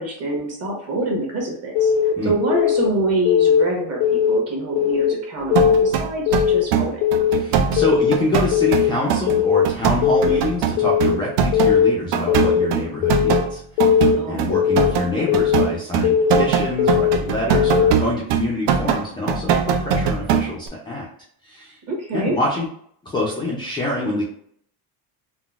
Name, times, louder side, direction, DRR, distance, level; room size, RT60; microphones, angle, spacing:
voice 1, 0.0-1.9 2.2-7.0 14.1-14.6 21.9-22.4, right 1 dB, 35° right, -1 dB, 1.0 m, -25 dB
Keyboard (musical) / Alarm, 1.8-2.1 2.5-2.9 3.3-3.6 4.0-4.4 4.8-5.1 5.5-5.9 6.3-6.6 7.0-7.4 7.8-8.1 8.5-8.9 9.3-9.7 10.0-10.4 10.8-11.2 11.5-11.9 12.3-12.7 13.0-13.4 13.8-14.2 14.5-14.9 15.3-15.7 16.0-16.4 16.8-17.2 17.5-17.9, left 9 dB, 90° left, 0.6 m, -18 dB
sound 1, 5.5-11.8 12.1-20.7, right 7 dB, 85° right, 0.5 m, -21 dB
voice 2, 7.3-14.0 14.2-21.1 21.4-21.8 22.1-22.7 23.0-24.2, left 2 dB, 15° left, -5 dB, 0.3 m, -26 dB
3.7 x 2.0 x 2.3 m, 0.65 s
cardioid pair, 150°, 42 cm